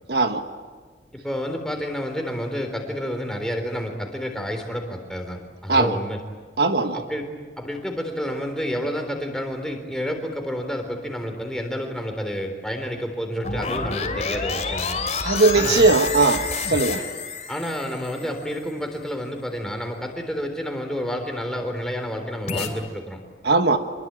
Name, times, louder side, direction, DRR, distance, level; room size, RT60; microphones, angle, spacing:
voice 1, 0.1-0.4 5.7-5.9 6.6-7.0 15.2-17.0 23.4-23.8, right 3 dB, 70° right, 7 dB, 1.5 m, -19 dB
voice 2, 1.1-6.2 6.9-7.3 7.6-15.0 15.5-15.9 17.5-23.2, equal, 5° left, 3 dB, 3.8 m, -29 dB
sound 1, 13.4-18.7 22.5-22.7, left 5 dB, 40° left, 3.0 m, -29 dB
25.5 x 22.5 x 9.0 m, 1.5 s
head